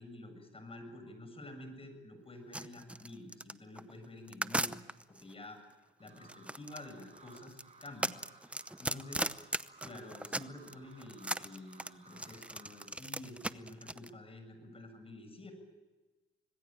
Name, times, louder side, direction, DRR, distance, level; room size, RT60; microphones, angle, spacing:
voice 1, 0.0-4.8 5.2-5.6 6.0-8.2 8.8-9.4 9.8-15.5, left 1 dB, 30° left, 7 dB, 7.3 m, -49 dB
sound 1, 2.5-5.2 6.1-10.7 11.0-14.1, right 1 dB, 5° right, 0.8 m, -37 dB
sound 2, 6.0-12.9, right 3 dB, 35° right, 6.9 m, -60 dB
26.0 x 20.5 x 9.0 m, 1.2 s
cardioid pair, 90°, 20 cm